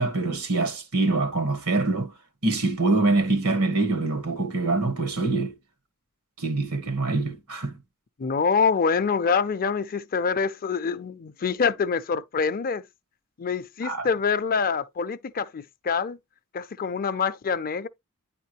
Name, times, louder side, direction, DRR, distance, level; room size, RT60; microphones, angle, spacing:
voice 1, 0.0-2.1 2.4-5.5 6.4-7.8 13.8-14.1, right 2 dB, 85° right, 1.7 m, -24 dB
voice 2, 8.2-12.8 13.4-16.2 16.5-17.9, left 5 dB, 40° left, 0.5 m, -25 dB
9.7 x 3.7 x 3.0 m
head